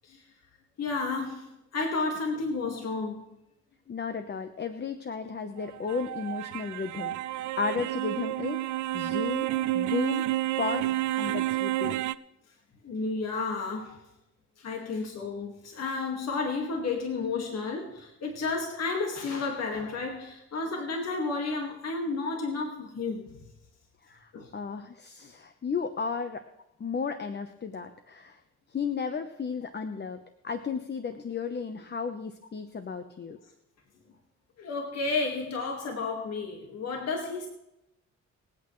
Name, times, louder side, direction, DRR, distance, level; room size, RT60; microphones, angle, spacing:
voice 1, 0.8-3.3 11.3-11.4 12.8-14.0 14.6-23.4 24.3-24.5 34.6-37.5, left 3 dB, 55° left, 2 dB, 1.9 m, -32 dB
voice 2, 3.9-8.6 8.9-10.3 10.6-10.9 11.2-12.0 14.8-14.9 24.0-26.4 26.8-28.4 28.7-33.4, left 5 dB, 35° left, 8 dB, 1.0 m, -34 dB
sound 1, 5.6-12.1, right 15 dB, 75° right, 0.6 m, -30 dB
25.0 x 8.5 x 3.2 m, 0.87 s
cardioid pair, 90°, 30 cm